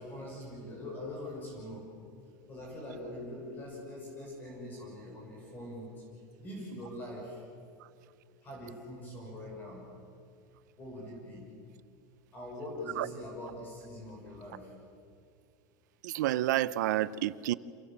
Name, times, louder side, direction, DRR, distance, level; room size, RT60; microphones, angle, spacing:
voice 1, 0.0-1.8 2.5-6.0 6.4-7.5 8.4-9.8 10.8-11.4 12.3-14.7, left 1 dB, 20° left, 6.3 m, -43 dB
voice 2, 16.0-17.5, right 14 dB, 80° right, 0.8 m, -29 dB
29.0 x 27.5 x 7.5 m
supercardioid pair, 175°, 10 cm